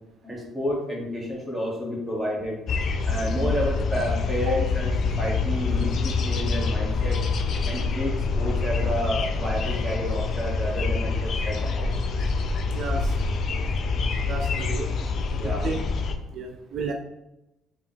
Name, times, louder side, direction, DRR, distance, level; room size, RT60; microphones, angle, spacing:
voice 1, 0.2-2.6 3.0-7.2 7.7-12.0 15.4-15.7, equal, 5° right, -5 dB, 1.6 m, -30 dB
sound 1, 2.7-16.1, left 4 dB, 50° left, 0.5 m, -26 dB
voice 2, 12.7-13.1 14.3-14.9 15.3-15.9 16.3-16.9, right 4 dB, 55° right, 3 dB, 0.4 m, -32 dB
4.7 x 3.7 x 2.9 m, 0.90 s
cardioid pair, 135°, 0 cm